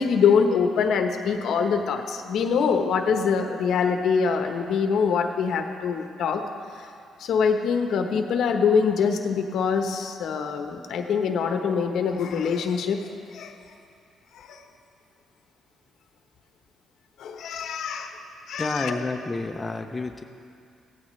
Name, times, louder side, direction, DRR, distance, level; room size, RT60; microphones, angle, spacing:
voice 1, 0.0-6.4 6.8-6.9 7.2-13.5 14.3-14.6 17.2-18.2 18.5-19.0, left 6 dB, 75° left, 5 dB, 1.0 m, -24 dB
voice 2, 18.6-20.2, left 3 dB, 20° left, 4 dB, 0.7 m, -29 dB
16.0 x 14.5 x 3.2 m, 2.4 s
cardioid pair, 90°, 0 cm